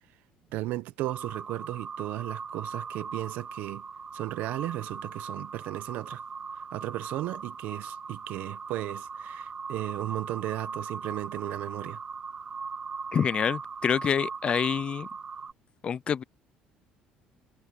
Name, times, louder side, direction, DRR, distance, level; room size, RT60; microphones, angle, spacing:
voice 1, 0.5-3.8 4.1-6.2 6.7-12.0, right 16 dB, 75° right, 1.1 m, -35 dB
sound 1, 1.0-15.5, right 5 dB, 30° right, 2.3 m, -39 dB
voice 2, 13.1-15.1 15.8-16.2, left 7 dB, 35° left, 0.5 m, -27 dB
cardioid pair, 115°, 3 cm